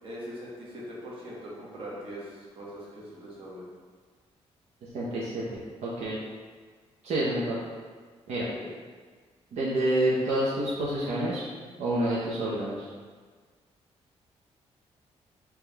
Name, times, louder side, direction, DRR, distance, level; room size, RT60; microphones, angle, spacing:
voice 1, 0.0-3.6 8.5-8.7, equal, 50° right, -6 dB, 1.2 m, -41 dB
voice 2, 4.9-5.4 5.8-6.2 7.0-7.6 8.3-8.5 9.5-11.4 11.8-12.9, right 1 dB, 80° right, -6 dB, 0.7 m, -28 dB
3.5 x 3.0 x 3.3 m, 1.5 s
cardioid pair, 125°, 11 cm